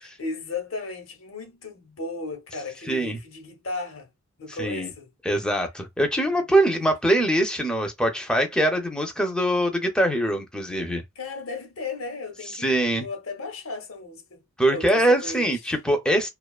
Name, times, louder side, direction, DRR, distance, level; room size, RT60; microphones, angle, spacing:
voice 1, 0.0-4.1 4.4-5.1 6.6-6.8 7.1-7.3 11.2-15.7, left 3 dB, 80° left, 0.9 m, -35 dB
voice 2, 2.9-3.2 4.5-4.9 5.2-11.0 12.5-13.1 14.6-16.3, right 1 dB, 5° left, 0.4 m, -23 dB
2.4 x 2.3 x 2.3 m
head